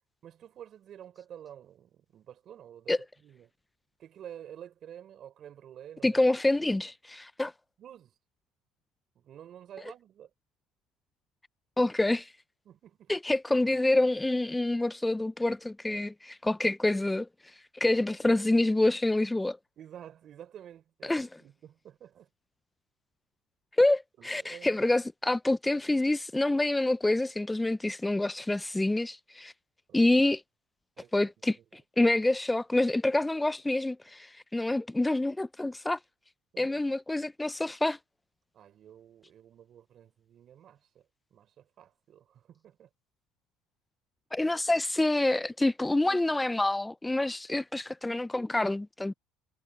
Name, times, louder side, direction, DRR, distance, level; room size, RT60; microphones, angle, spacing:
voice 1, 0.2-3.5 4.0-6.2 7.8-8.2 9.1-10.3 12.6-13.1 19.8-22.3 24.2-24.8 29.9-30.1 31.0-31.8 36.5-36.9 38.5-42.9, right 10 dB, 50° right, 3.5 m, -50 dB
voice 2, 6.0-7.5 11.8-12.3 13.1-17.3 17.7-19.6 21.0-21.3 23.8-29.5 29.9-30.4 31.1-36.0 36.6-38.0 44.3-49.1, left 2 dB, 10° left, 0.4 m, -27 dB
supercardioid pair, 100°, 0 cm